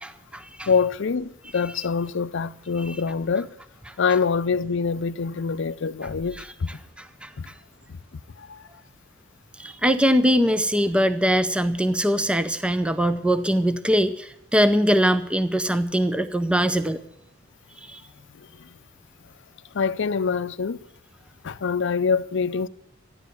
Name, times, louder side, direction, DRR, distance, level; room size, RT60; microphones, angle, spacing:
voice 1, 0.0-0.7 7.0-7.3 9.6-17.0 17.9-18.0, equal, 5° right, 0.6 m, -22 dB
voice 2, 0.7-3.5 4.0-6.7 7.4-7.5 7.9-8.0 8.4-8.7 18.3-18.8 19.7-20.8 21.4-22.7, left 5 dB, 65° left, 0.5 m, -25 dB
14.0 x 10.5 x 8.0 m
head